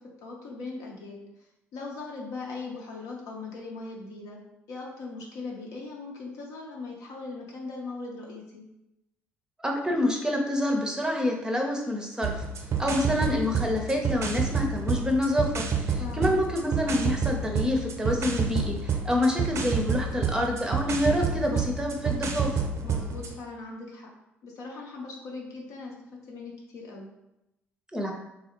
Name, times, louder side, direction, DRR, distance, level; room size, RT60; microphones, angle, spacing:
voice 1, 0.2-1.2 1.7-4.4 4.7-8.6 16.0-16.4 22.8-24.1 24.4-25.9 26.3-27.1, left 3 dB, 65° left, -2 dB, 0.8 m, -39 dB
voice 2, 9.6-12.4 12.8-22.5 27.9-28.1, left 1 dB, 10° right, 1 dB, 0.6 m, -27 dB
sound 1, 12.2-23.4, right 5 dB, 50° right, 0.5 m, -29 dB
3.6 x 2.4 x 3.0 m, 0.90 s
hypercardioid pair, 50°, 6 cm